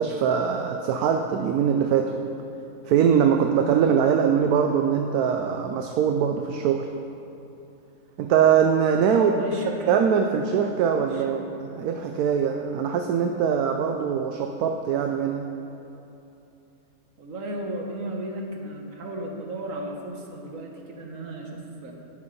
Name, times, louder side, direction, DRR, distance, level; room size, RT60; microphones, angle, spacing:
voice 1, 0.0-2.2 2.9-6.9 8.2-9.3 9.9-11.4 11.8-15.5, right 7 dB, 80° right, 4 dB, 1.1 m, -22 dB
voice 2, 9.1-10.1 11.1-11.3 17.2-21.9, right 1 dB, 60° right, 1 dB, 1.6 m, -34 dB
11.0 x 7.9 x 5.3 m, 2.9 s
omnidirectional pair, 1.6 m